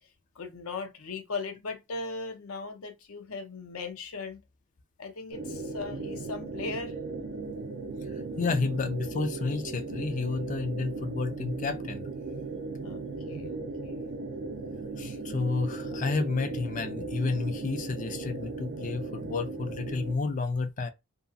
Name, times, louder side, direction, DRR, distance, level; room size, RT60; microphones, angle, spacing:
voice 1, 0.4-4.4 5.0-7.0 12.8-14.1, left 4 dB, 80° left, 0.6 m, -38 dB
sound 1, 5.3-20.1, right 3 dB, 70° right, 0.5 m, -37 dB
voice 2, 8.4-12.1 15.0-20.9, left 4 dB, 35° left, 0.3 m, -31 dB
2.7 x 2.3 x 2.5 m
head